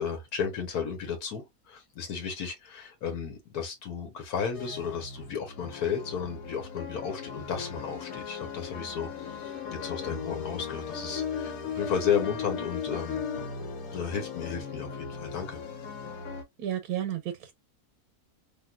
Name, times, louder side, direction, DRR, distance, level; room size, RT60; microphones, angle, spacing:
voice 1, 0.0-13.2 13.9-15.6, left 7 dB, 85° left, 1.5 m, -33 dB
sound 1, 4.5-16.4, left 6 dB, 70° left, 1.3 m, -37 dB
voice 2, 16.6-17.5, right 11 dB, 90° right, 1.2 m, -32 dB
3.6 x 2.6 x 2.3 m
omnidirectional pair, 1.6 m